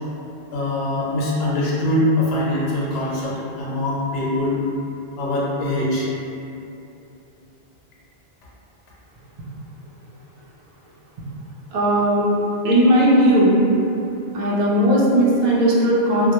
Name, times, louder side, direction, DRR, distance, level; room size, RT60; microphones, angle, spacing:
voice 1, 0.5-4.6 5.2-6.1, left 1 dB, 75° left, -6 dB, 0.8 m, -23 dB
voice 2, 11.7-12.3 12.6-13.6 14.3-16.3, equal, 55° right, -6 dB, 0.4 m, -17 dB
2.1 x 2.0 x 2.9 m, 2.8 s
omnidirectional pair, 1.1 m